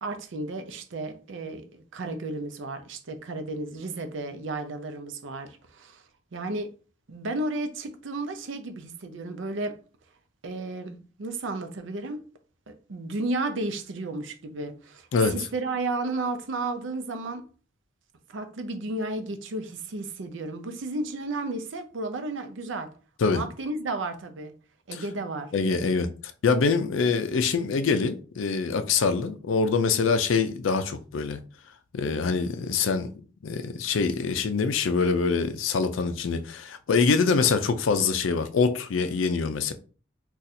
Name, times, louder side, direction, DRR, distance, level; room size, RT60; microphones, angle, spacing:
voice 1, 0.0-6.0 6.3-6.7 7.1-9.8 10.4-12.2 12.7-17.4 18.3-22.9 23.3-24.5 24.9-25.5, right 2 dB, 65° right, 0.5 m, -33 dB
voice 2, 25.5-26.1 26.4-31.4 31.9-33.1 33.4-39.7, left 4 dB, 70° left, 0.4 m, -24 dB
2.6 x 2.4 x 4.0 m
head